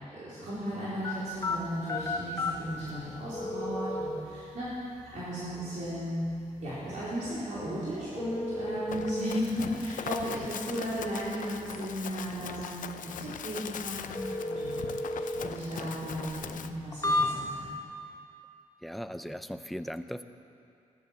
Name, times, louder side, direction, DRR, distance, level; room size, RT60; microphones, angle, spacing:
voice 1, 0.1-4.7 5.1-6.3 6.6-14.8 15.1-17.7, equal, 65° right, -10 dB, 4.1 m, -35 dB
sound 1, 1.0-17.8, left 2 dB, 25° left, 1.3 m, -36 dB
Run, 8.9-16.7, left 8 dB, 80° left, 0.6 m, -40 dB
voice 2, 18.8-20.2, equal, ahead, 10 dB, 0.6 m, -38 dB
15.5 x 11.0 x 7.2 m, 2.6 s
wide cardioid pair, 120°, 13 cm